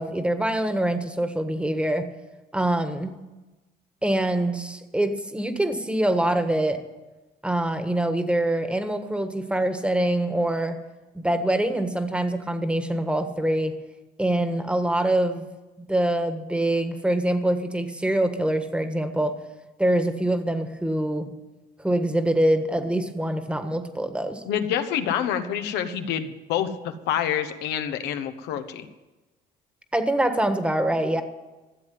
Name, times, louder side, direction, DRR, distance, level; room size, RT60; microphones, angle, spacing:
voice 1, 0.0-2.1 2.5-3.1 4.0-6.8 7.4-10.8 11.1-13.7 14.2-15.5 15.8-19.3 19.8-21.3 21.8-24.4 29.9-31.2, right 1 dB, 5° right, 8 dB, 1.4 m, -24 dB
voice 2, 24.4-28.8, left 9 dB, 90° left, 8 dB, 1.2 m, -27 dB
14.0 x 7.7 x 9.5 m, 1.1 s
cardioid pair, 110°, 17 cm